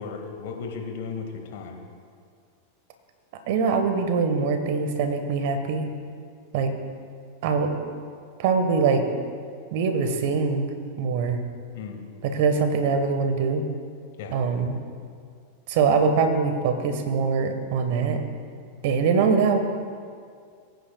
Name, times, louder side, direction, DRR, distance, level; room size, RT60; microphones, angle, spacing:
voice 1, 0.0-1.8 11.7-12.0 14.2-14.4, left 5 dB, 60° left, 2 dB, 1.8 m, -35 dB
voice 2, 3.5-5.9 6.5-6.7 7.4-7.7 8.4-9.1 9.7-10.7 11.0-11.4 12.2-13.6 14.3-14.8 15.7-18.2 18.8-19.6, right 5 dB, 60° right, 7 dB, 1.3 m, -23 dB
21.0 x 9.4 x 2.3 m, 2.2 s
hypercardioid pair, 95°, 0 cm